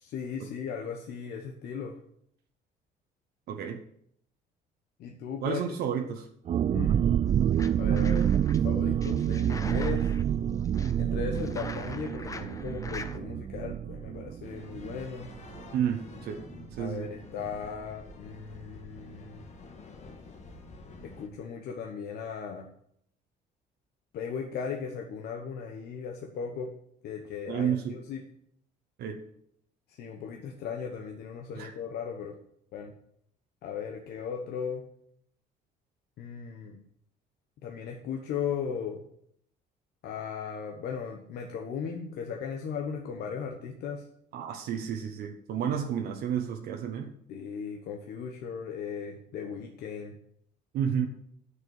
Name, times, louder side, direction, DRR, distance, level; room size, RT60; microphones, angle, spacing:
voice 1, 0.0-2.0 5.0-5.6 6.7-7.0 7.8-8.3 8.6-10.1 11.0-15.3 16.8-19.4 21.0-22.7 24.1-26.7 27.0-28.2 29.9-32.4 32.7-32.9 33.6-34.8 36.2-36.8 37.6-39.0 40.0-44.1 47.3-50.2, left 6 dB, 70° left, 2 dB, 1.2 m, -37 dB
voice 2, 3.5-3.8 5.4-6.2 15.7-16.4 16.8-17.1 27.5-27.9 29.0-29.2 31.6-31.7 44.3-47.1 50.7-51.1, right 8 dB, 70° right, 3 dB, 1.1 m, -31 dB
sound 1, 6.5-15.9 16.1-16.2 16.6-16.9, right 9 dB, 40° right, 0.4 m, -28 dB
sound 2, 7.3-8.6 9.0-13.2, left 3 dB, 20° left, 0.8 m, -44 dB
sound 3, 14.4-21.3, left 3 dB, 45° left, 1.7 m, -49 dB
8.2 x 6.7 x 7.2 m, 0.69 s
cardioid pair, 110°, 17 cm